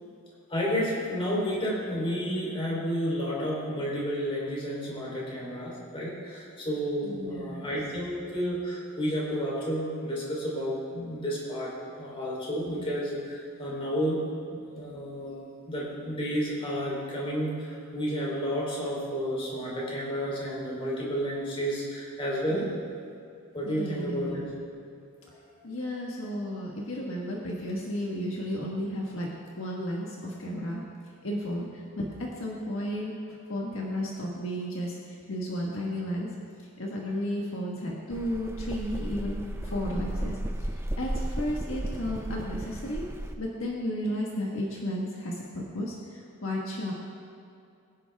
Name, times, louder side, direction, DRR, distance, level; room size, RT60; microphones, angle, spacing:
voice 1, 0.5-14.2 14.7-15.4 15.7-22.7 23.5-24.4, equal, 25° left, -4 dB, 3.6 m, -31 dB
voice 2, 7.0-7.7 22.5-22.8 23.6-24.4 25.6-29.3 29.6-30.8 31.2-33.1 33.5-36.3 36.8-43.0 43.4-46.9, equal, 65° left, -2 dB, 1.5 m, -33 dB
sound 1, 38.1-43.4, right 1 dB, 10° right, 0.5 m, -34 dB
22.5 x 10.5 x 3.5 m, 2.5 s
head